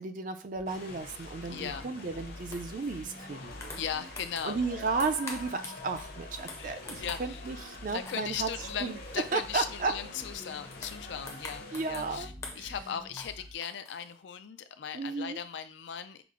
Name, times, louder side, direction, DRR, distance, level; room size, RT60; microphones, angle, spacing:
voice 1, 0.0-3.8 4.4-8.5 8.8-9.0 9.3-10.0 11.7-12.3 12.6-12.7 14.9-15.4, right 4 dB, 45° right, 7 dB, 0.4 m, -34 dB
sound 1, 0.5-13.5, left 1 dB, 80° right, 2.0 m, -48 dB
sound 2, 0.7-12.2, left 3 dB, 55° left, 0.8 m, -47 dB
voice 2, 1.5-1.9 3.8-4.6 6.6-7.4 7.9-16.2, left 8 dB, 70° left, 10 dB, 0.4 m, -38 dB
sound 3, 2.5-2.9 3.3-4.6 4.8-7.3 7.7-8.3 8.6-9.2 9.8-10.0 10.5-12.1 12.4-12.8 13.2-14.2, left 3 dB, 15° left, 0.5 m, -46 dB
5.8 x 2.0 x 3.7 m, 0.36 s
head